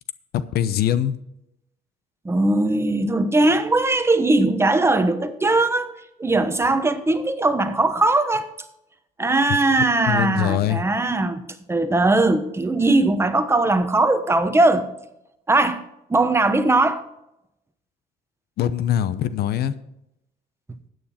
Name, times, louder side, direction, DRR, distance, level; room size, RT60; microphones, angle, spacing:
voice 1, 0.3-1.2 10.1-10.8 18.6-19.7, left 10 dB, 70° left, 0.8 m, -22 dB
voice 2, 2.2-5.9 6.2-8.5 9.2-11.4 11.7-14.9 15.5-15.8 16.1-17.0, right 2 dB, 15° right, 1.1 m, -19 dB
13.0 x 9.3 x 4.3 m
cardioid pair, 110°, 17 cm